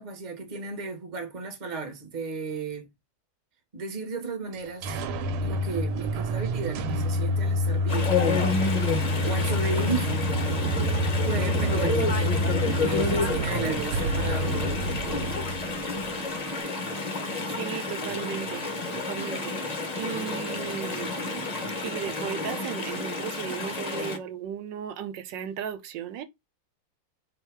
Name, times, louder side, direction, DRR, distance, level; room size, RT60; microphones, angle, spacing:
voice 1, 0.0-2.9 3.7-5.0 5.4-8.1 9.2-10.2 11.2-12.4 12.7-14.8, right 4 dB, 30° right, 1.0 m, -34 dB
sound 1, 4.5-16.2, equal, 85° right, 1.5 m, -27 dB
Chatter / Stream, 7.9-24.2, left 3 dB, 60° left, 0.4 m, -30 dB
voice 2, 17.5-18.6 19.0-21.1 21.8-26.2, right 9 dB, 70° right, 1.3 m, -35 dB
4.4 x 2.7 x 4.5 m
omnidirectional pair, 2.3 m